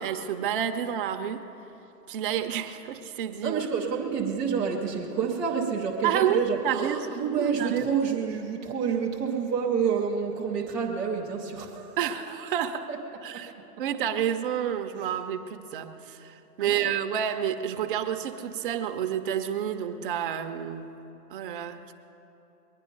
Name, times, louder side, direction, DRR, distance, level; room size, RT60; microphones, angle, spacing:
voice 1, 0.0-1.5 2.1-3.6 6.0-7.1 7.4-8.1 12.0-12.9 13.2-13.5 13.8-20.9 21.3-21.9, right 9 dB, 35° right, 7 dB, 0.7 m, -29 dB
voice 2, 3.4-12.0 12.9-13.0 13.3-13.5 16.6-16.9, right 6 dB, 5° right, -4 dB, 0.4 m, -28 dB
21.5 x 9.9 x 5.3 m, 2.9 s
hypercardioid pair, 145°, 48 cm